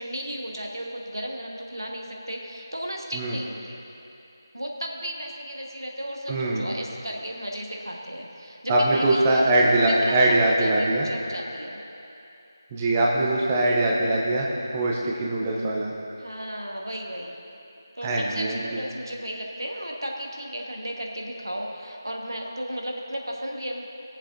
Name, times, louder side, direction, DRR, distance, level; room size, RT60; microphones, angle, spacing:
voice 1, 0.0-3.8 4.5-10.2 10.5-11.8 16.2-17.3 18.0-23.8, equal, 85° right, 0 dB, 1.3 m, -34 dB
voice 2, 6.3-6.7 8.7-11.1 12.7-14.5 14.7-15.9 18.0-18.7, right 1 dB, 15° right, -3 dB, 0.6 m, -22 dB
20.0 x 7.3 x 2.6 m, 2.8 s
figure-of-eight pair, 165°, 2 cm